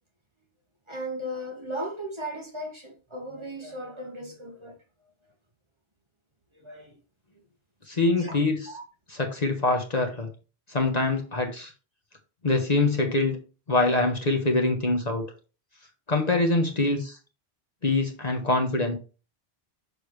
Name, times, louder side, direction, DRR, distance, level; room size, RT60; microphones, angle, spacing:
voice 1, 0.9-4.7 6.5-7.0 7.9-8.4 8.7-8.8, equal, 30° right, 1.5 m, -36 dB
voice 2, 7.9-8.6 9.1-10.3 10.7-11.7 12.4-13.4 13.7-15.2 16.1-17.2 17.8-18.9, left 2 dB, 40° left, 1.2 m, -24 dB
6.7 x 6.5 x 3.2 m
omnidirectional pair, 1.1 m